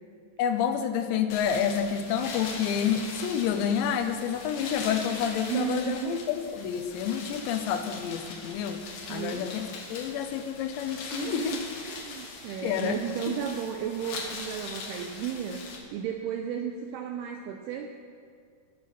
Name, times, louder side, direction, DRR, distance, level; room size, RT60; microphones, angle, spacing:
voice 1, 0.4-8.8 9.1-11.6 12.6-13.0, left 8 dB, 90° left, 8 dB, 2.9 m, -29 dB
sound 1, 1.3-15.8, left 4 dB, 65° left, 2.7 m, -41 dB
voice 2, 5.5-6.1 9.1-9.5 11.1-17.9, right 8 dB, 85° right, 4 dB, 2.3 m, -34 dB
19.0 x 6.4 x 4.2 m, 2.2 s
omnidirectional pair, 5.1 m